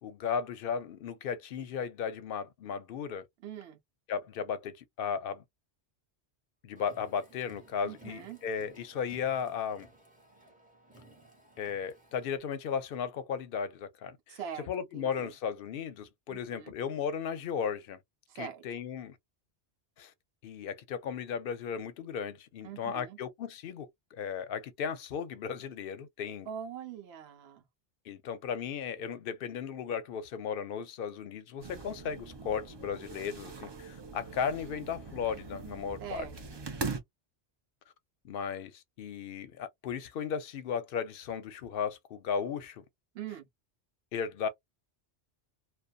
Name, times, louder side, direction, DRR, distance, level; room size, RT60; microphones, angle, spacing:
voice 1, 0.0-3.3 4.1-5.4 6.6-9.9 11.6-14.4 14.7-18.0 18.3-19.2 20.0-20.1 20.4-26.5 28.1-36.3 38.2-42.8 44.1-44.5, left 7 dB, 60° left, 0.7 m, -35 dB
voice 2, 3.4-3.8 7.8-8.4 14.3-15.3 16.3-16.7 18.3-18.8 22.6-23.2 26.5-27.6 36.0-36.7 43.1-43.5, right 8 dB, 70° right, 0.9 m, -43 dB
Car, 6.7-12.4, right 2 dB, 10° right, 0.8 m, -58 dB
sound 1, 31.6-37.0, right 4 dB, 45° right, 0.3 m, -41 dB
2.5 x 2.2 x 2.2 m
omnidirectional pair, 1.1 m